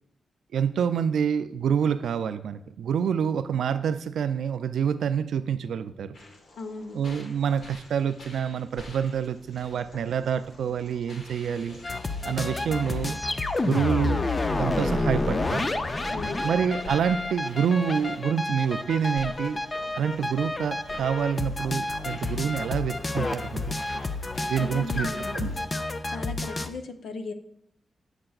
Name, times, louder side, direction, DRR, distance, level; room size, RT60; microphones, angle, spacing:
voice 1, 0.5-6.1 6.9-11.8 12.2-13.2 13.6-14.2 14.6-15.7 16.4-19.6 19.9-23.8 24.5-25.1 25.3-25.6, right 7 dB, 90° right, 12 dB, 0.4 m, -27 dB
sound 1, 6.1-25.6, left 1 dB, 50° left, 1.0 m, -48 dB
voice 2, 6.6-7.0 16.1-16.5 24.6-25.5 26.1-27.3, left 3 dB, 75° left, 6 dB, 0.6 m, -37 dB
sound 2, 11.8-26.7, left 2 dB, 20° left, 0.4 m, -29 dB
8.7 x 6.6 x 2.4 m, 0.73 s
wide cardioid pair, 175°, 0 cm